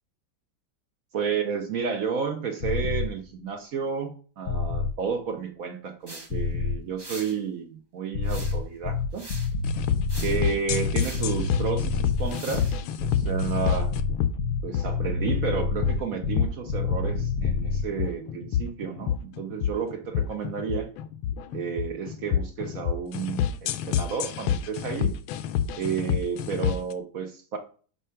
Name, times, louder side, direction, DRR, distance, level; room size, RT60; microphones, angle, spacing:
voice 1, 1.1-9.3 10.2-13.9 14.6-20.9 21.5-25.1 25.8-27.6, right 6 dB, 60° right, 5 dB, 0.9 m, -31 dB
sound 1, 2.6-3.1 4.5-5.0 6.3-6.8 8.1-17.9, left 4 dB, 55° left, 1.0 m, -28 dB
sound 2, 6.1-6.3 7.0-7.4 8.2-8.7 9.1-9.5 10.1-10.4 11.0-11.3 12.2-12.8, right 2 dB, 20° right, 0.6 m, -42 dB
sound 3, 9.6-26.9, left 9 dB, 85° left, 1.4 m, -29 dB
5.6 x 4.8 x 5.6 m, 0.42 s
omnidirectional pair, 2.2 m